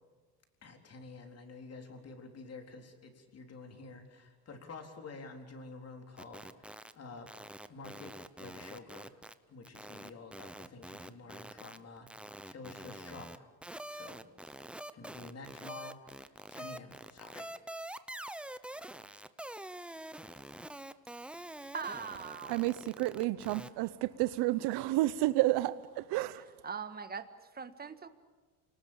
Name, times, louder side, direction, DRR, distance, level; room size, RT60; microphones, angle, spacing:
voice 1, 0.6-7.3 7.7-9.2 9.5-12.1 12.5-13.5 13.8-14.3 14.9-17.5, left 3 dB, 35° left, 4 dB, 3.9 m, -49 dB
sound 1, 6.2-6.9 7.2-9.3 9.7-13.4 13.6-23.7, right 1 dB, 5° right, 0.7 m, -46 dB
voice 2, 21.7-22.6 26.6-27.3 27.5-28.1, right 6 dB, 20° right, 10 dB, 1.6 m, -40 dB
voice 3, 22.5-26.5, right 17 dB, 70° right, 15 dB, 0.8 m, -31 dB
28.5 x 19.0 x 8.8 m, 1.3 s
cardioid pair, 125°, 42 cm